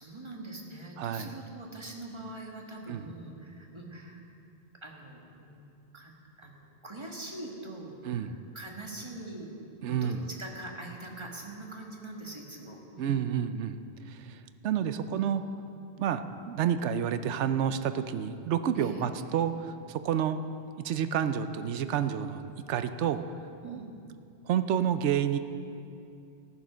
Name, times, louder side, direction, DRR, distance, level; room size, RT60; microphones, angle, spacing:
voice 1, 0.0-4.2 4.8-6.1 6.4-9.6 9.9-13.3 14.9-15.4 18.7-19.1 23.6-23.9, right 2 dB, 25° right, -1 dB, 1.8 m, -43 dB
voice 2, 1.0-1.3 2.9-3.0 8.0-8.4 9.8-10.2 13.0-13.8 14.1-15.4 16.0-20.4 20.8-22.4 22.7-23.2 23.6-23.8 24.5-25.4, right 9 dB, 80° right, 10 dB, 0.9 m, -29 dB
14.5 x 9.7 x 6.2 m, 2.6 s
omnidirectional pair, 1.2 m